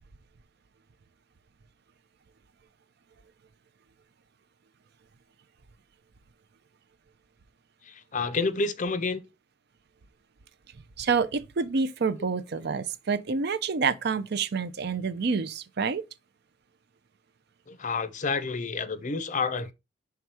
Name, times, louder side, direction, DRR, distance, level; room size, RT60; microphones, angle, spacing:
voice 1, 7.9-9.2 17.7-19.7, left 4 dB, 40° left, 0.5 m, -29 dB
voice 2, 11.0-16.0, right 5 dB, 55° right, 0.5 m, -28 dB
5.8 x 3.5 x 4.6 m
head